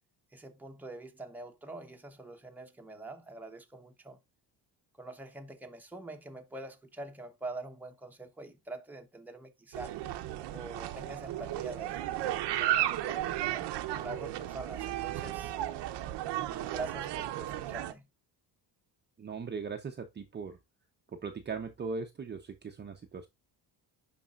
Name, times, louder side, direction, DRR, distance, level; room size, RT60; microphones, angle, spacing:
voice 1, 0.3-4.2 5.0-10.0 10.5-15.5 16.3-18.1, right 2 dB, 5° right, 1.0 m, -45 dB
sound 1, 9.7-17.9, right 13 dB, 85° right, 0.9 m, -34 dB
voice 2, 19.2-20.6 21.1-23.3, right 5 dB, 25° right, 0.8 m, -39 dB
11.5 x 4.2 x 2.4 m
cardioid pair, 150°, 40 cm